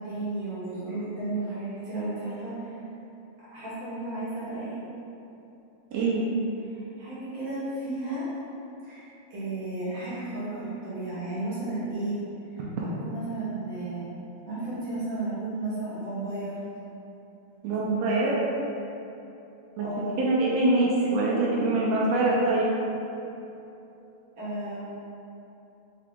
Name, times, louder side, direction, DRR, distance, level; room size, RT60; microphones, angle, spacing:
voice 1, 0.0-2.8 3.5-4.8 6.7-8.2 8.8-9.0 9.3-12.2 13.0-14.1 14.4-16.6 19.8-20.2 24.4-24.8, right 2 dB, 60° right, -11 dB, 2.0 m, -33 dB
voice 2, 5.9-6.2 17.6-18.4 19.8-19.9 20.2-22.7, right 2 dB, 80° right, -5 dB, 1.5 m, -24 dB
5.0 x 2.8 x 3.5 m, 2.9 s
omnidirectional pair, 3.5 m